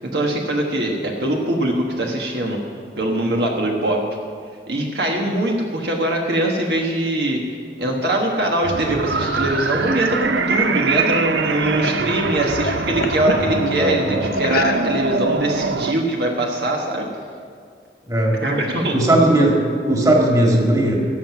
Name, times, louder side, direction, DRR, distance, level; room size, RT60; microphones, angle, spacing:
voice 1, 0.1-2.6 3.0-4.0 4.7-7.4 7.8-17.1 18.4-18.9, right 1 dB, 65° right, 0 dB, 1.4 m, -22 dB
sound 1, 8.6-15.9, right 4 dB, 85° right, 0.6 m, -23 dB
sound 2, 9.0-12.1 12.4-13.5 14.3-15.2, left 3 dB, 55° left, 0.8 m, -30 dB
voice 2, 13.4-14.3 18.1-18.4 18.9-19.6 19.9-21.0, right 1 dB, 20° right, -1 dB, 2.0 m, -17 dB
18.0 x 7.5 x 5.9 m, 2.2 s
head